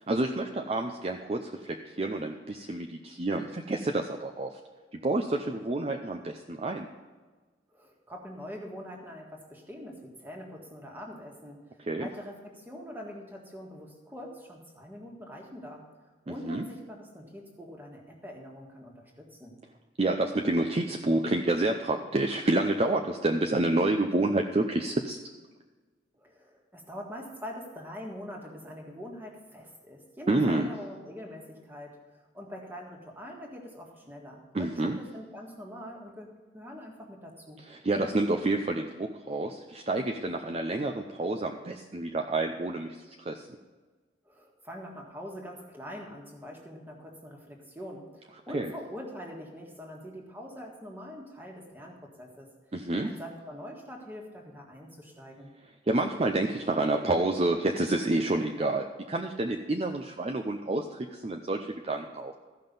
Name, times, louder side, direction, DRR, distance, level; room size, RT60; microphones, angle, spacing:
voice 1, 0.1-4.5 4.9-6.9 11.8-12.1 16.3-16.6 20.0-25.2 30.3-30.7 34.5-35.0 37.7-43.5 48.5-48.7 52.7-53.1 55.9-62.3, right 2 dB, 35° right, 4 dB, 0.5 m, -29 dB
voice 2, 7.7-19.6 26.2-37.6 44.2-52.5 53.0-55.5, equal, 10° right, 0 dB, 1.6 m, -44 dB
14.0 x 5.8 x 5.3 m, 1.3 s
head